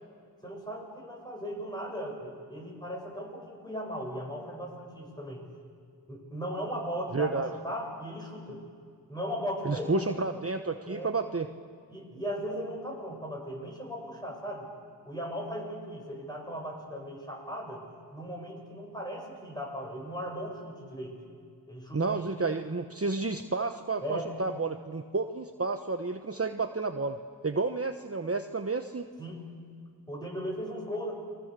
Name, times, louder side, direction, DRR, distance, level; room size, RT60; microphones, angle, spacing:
voice 1, 0.4-5.4 6.1-8.6 9.1-10.0 10.9-11.1 11.9-14.7 15.0-17.8 18.1-21.1 21.7-22.5 24.0-24.3 29.2-29.5 30.1-31.1, equal, 10° left, -1 dB, 7.9 m, -37 dB
voice 2, 7.1-7.5 9.6-11.5 21.9-27.2 27.4-29.1, right 3 dB, 35° right, 7 dB, 1.1 m, -31 dB
29.5 x 22.5 x 6.9 m, 2.2 s
wide cardioid pair, 45°, 42 cm